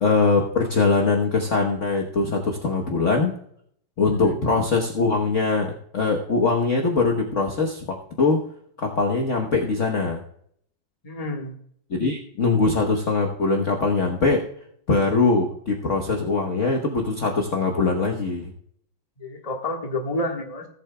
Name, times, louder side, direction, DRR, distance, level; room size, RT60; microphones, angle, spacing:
voice 1, 0.0-3.3 4.0-8.4 8.8-10.2 11.9-14.4 14.9-18.5, left 3 dB, 45° left, 1 dB, 1.2 m, -22 dB
voice 2, 11.0-11.5 19.2-20.7, left 1 dB, 20° left, 2 dB, 1.3 m, -29 dB
18.5 x 8.3 x 2.2 m, 0.67 s
omnidirectional pair, 2.2 m